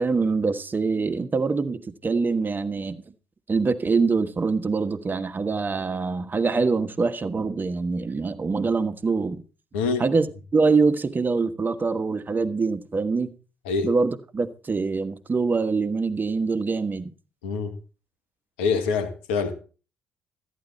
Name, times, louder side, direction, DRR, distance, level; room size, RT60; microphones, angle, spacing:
voice 1, 0.0-3.0 3.5-9.4 10.0-10.3 10.5-13.3 13.8-17.1, right 4 dB, 35° right, 1.4 m, -24 dB
voice 2, 9.7-10.0 13.6-13.9 17.4-17.7 18.6-19.5, left 5 dB, 85° left, 1.5 m, -25 dB
14.0 x 10.5 x 4.2 m
hypercardioid pair, 55°, 6 cm